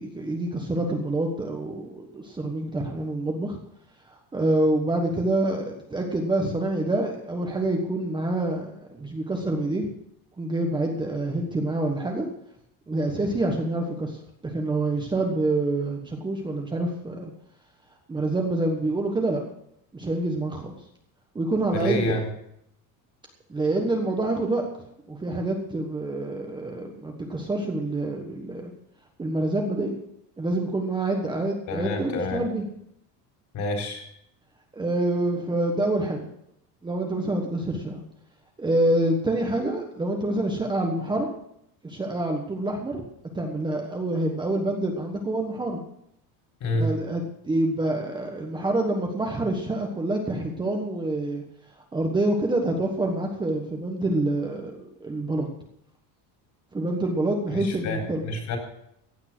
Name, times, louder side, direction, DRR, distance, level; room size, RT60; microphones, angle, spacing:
voice 1, 0.0-3.6 4.1-9.9 10.4-12.2 12.9-14.2 14.4-17.3 18.1-19.4 19.9-20.8 21.3-22.1 23.5-24.6 25.1-28.7 29.2-30.0 30.4-32.6 34.7-36.3 36.8-38.0 38.6-41.3 41.8-43.0 43.3-45.8 46.8-51.4 51.9-55.5 56.7-58.2, right 2 dB, 10° right, 2 dB, 1.3 m, -27 dB
voice 2, 21.7-22.3 31.7-32.4 33.5-34.0 46.6-46.9 57.5-58.6, left 1 dB, 45° left, 2 dB, 4.2 m, -28 dB
15.5 x 8.9 x 6.1 m, 0.74 s
cardioid pair, 170°, 40 cm